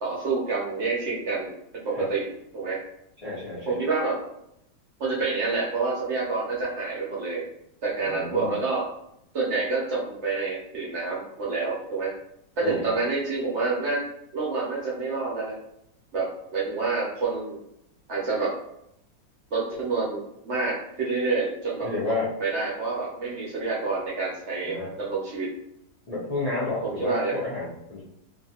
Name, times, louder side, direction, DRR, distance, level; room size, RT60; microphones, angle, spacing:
voice 1, 0.0-2.8 3.7-4.2 5.0-7.4 7.8-8.9 9.3-12.1 12.6-14.0 14.3-15.6 16.1-17.6 18.1-18.6 19.5-25.5 26.8-27.4, right 3 dB, 60° right, -5 dB, 0.7 m, -28 dB
voice 2, 3.2-3.8 8.0-8.6 12.6-12.9 21.8-22.3 24.6-24.9 26.1-28.0, left 3 dB, 70° left, -9 dB, 0.3 m, -31 dB
2.8 x 2.5 x 2.8 m, 0.78 s
omnidirectional pair, 1.9 m